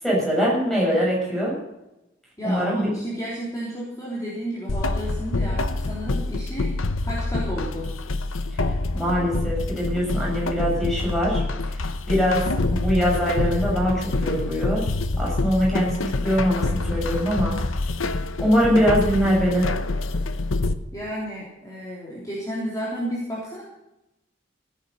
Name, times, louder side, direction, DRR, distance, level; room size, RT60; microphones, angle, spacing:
voice 1, 0.0-1.6 2.4-2.9 8.9-11.8 12.1-14.9 15.2-17.6 18.4-19.7, equal, ahead, -4 dB, 7.1 m, -23 dB
voice 2, 2.4-7.9 20.9-23.6, equal, 15° left, -6 dB, 3.7 m, -32 dB
sound 1, 4.7-20.7, left 2 dB, 90° left, 0.9 m, -26 dB
16.5 x 10.0 x 6.8 m, 0.93 s
head